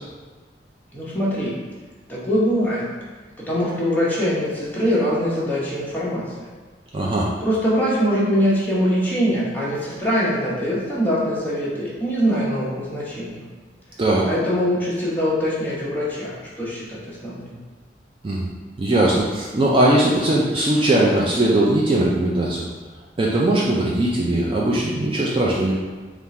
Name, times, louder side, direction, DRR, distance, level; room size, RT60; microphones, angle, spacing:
voice 1, 0.9-1.5 2.1-2.8 3.4-6.2 7.4-13.4 14.2-17.6, equal, 10° left, -8 dB, 0.9 m, -23 dB
voice 2, 6.9-7.3 14.0-14.2 18.2-18.5 18.8-22.7 23.2-25.7, right 1 dB, 30° right, -4 dB, 0.4 m, -19 dB
3.6 x 2.5 x 4.1 m, 1.4 s
head